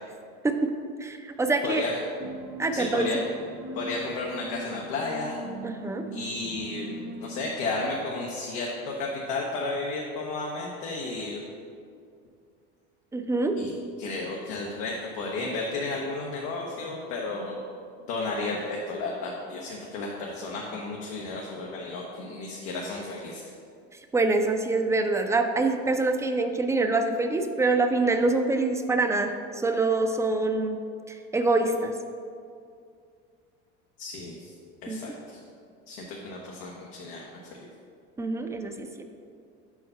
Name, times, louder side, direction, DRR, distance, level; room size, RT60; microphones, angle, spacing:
voice 1, 1.0-1.8 2.6-3.2 5.6-6.0 13.1-13.5 24.1-30.8 31.1-31.9 34.9-35.1 38.2-39.0, right 3 dB, 10° right, 5 dB, 0.5 m, -25 dB
sound 1, 2.2-7.9, right 2 dB, 45° right, 0.7 m, -40 dB
voice 2, 2.7-3.2 3.7-5.4 6.1-11.4 13.6-13.7 14.0-17.6 18.1-23.5 34.0-34.5 34.8-35.4 35.9-37.2 37.6-37.7, left 3 dB, 80° left, -2 dB, 0.9 m, -33 dB
5.4 x 4.7 x 5.6 m, 2.4 s
supercardioid pair, 100°, 30 cm